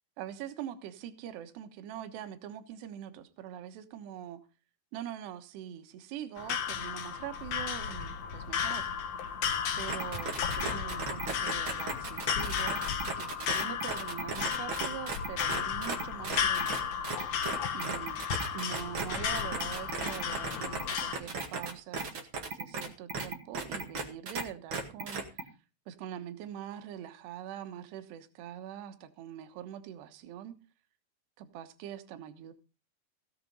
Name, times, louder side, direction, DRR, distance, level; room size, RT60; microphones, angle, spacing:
voice 1, 0.2-4.4 4.9-8.9 9.8-12.8 13.2-16.9 17.7-18.2 18.5-25.5 25.9-30.6 31.4-32.5, right 10 dB, 75° right, 3.3 m, -43 dB
sound 1, 6.4-21.1, left 7 dB, 60° left, 1.8 m, -34 dB
sound 2, 9.9-24.4 24.7-25.4, right 4 dB, 45° right, 1.6 m, -36 dB
16.5 x 7.6 x 5.4 m
omnidirectional pair, 5.1 m